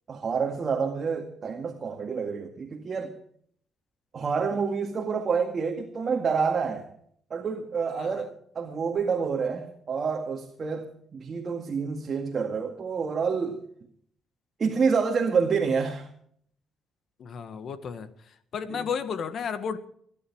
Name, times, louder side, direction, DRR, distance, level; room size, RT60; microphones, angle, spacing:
voice 1, 0.1-3.1 4.1-6.9 7.3-13.6 14.6-16.1 18.7-18.9, right 5 dB, 45° right, 3 dB, 2.0 m, -28 dB
voice 2, 17.2-18.1 18.5-19.8, left 6 dB, 60° left, 11 dB, 1.8 m, -32 dB
21.0 x 11.0 x 4.8 m, 0.64 s
cardioid pair, 90°, 0 cm